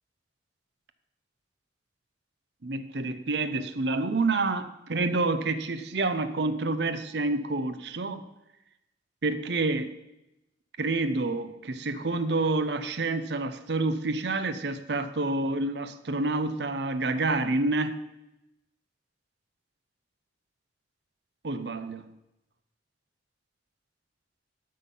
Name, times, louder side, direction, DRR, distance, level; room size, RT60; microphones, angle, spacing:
voice 1, 2.6-8.2 9.2-9.9 10.8-18.0 21.4-22.0, right 3 dB, 65° right, 11 dB, 0.7 m, -28 dB
12.5 x 5.6 x 5.5 m, 0.91 s
head